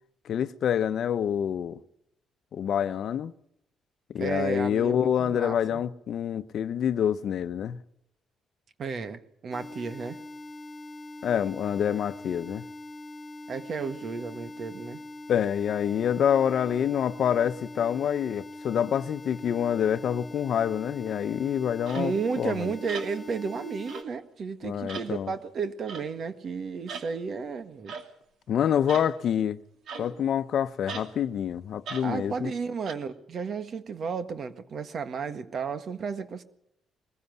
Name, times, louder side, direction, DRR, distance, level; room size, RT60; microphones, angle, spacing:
voice 1, 0.2-1.8 2.5-3.3 4.1-7.8 11.2-12.7 15.3-22.7 24.6-25.3 28.5-29.6 30.0-32.5, left 9 dB, 65° left, 0.9 m, -27 dB
voice 2, 4.2-5.8 8.8-10.2 13.5-15.0 21.9-27.9 32.0-36.4, right 5 dB, 55° right, 1.7 m, -33 dB
sound 1, 9.5-24.0, left 1 dB, 20° left, 2.5 m, -43 dB
sound 2, 21.9-22.1 22.9-23.1 23.9-24.2 24.9-25.1 25.9-26.1 26.9-27.1 27.9-28.1 28.9-29.1 29.9-30.3 30.9-31.1 31.8-32.1 32.8-32.9, right 5 dB, 70° right, 2.6 m, -39 dB
22.0 x 15.5 x 9.5 m
cardioid pair, 90°, 0 cm